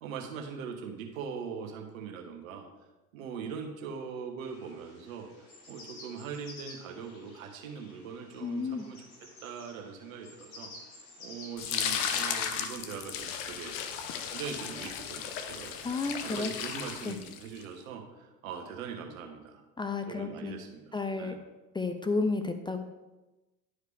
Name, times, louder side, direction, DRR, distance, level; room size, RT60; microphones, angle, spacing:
voice 1, 0.0-2.7 3.1-5.3 5.7-9.0 9.4-10.7 11.2-13.7 14.3-15.8 16.2-19.6 20.1-21.4, right 6 dB, 75° right, 3 dB, 1.3 m, -41 dB
sound 1, 4.4-14.5, left 2 dB, 80° left, 2.2 m, -52 dB
voice 2, 8.4-8.9 15.8-16.5 17.1-17.2 19.8-20.5 20.9-21.4 21.7-22.8, left 3 dB, 10° left, 7 dB, 0.4 m, -32 dB
sound 2, 11.6-17.6, left 8 dB, 65° left, 0.9 m, -35 dB
11.0 x 4.8 x 3.3 m, 1.1 s
hypercardioid pair, 75°, 41 cm